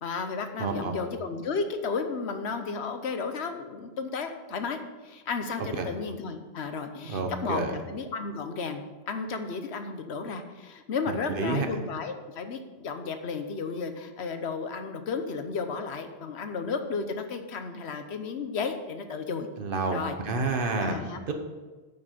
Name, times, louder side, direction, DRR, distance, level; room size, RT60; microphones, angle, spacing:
voice 1, 0.0-19.5 19.9-20.2 20.8-21.2, left 4 dB, 75° left, 7 dB, 1.2 m, -33 dB
voice 2, 0.6-1.0 5.8-5.9 7.1-7.7 11.4-11.7 19.6-21.0 21.3-21.4, right 3 dB, 55° right, 4 dB, 1.2 m, -29 dB
9.2 x 5.9 x 6.6 m, 1.3 s
omnidirectional pair, 1.1 m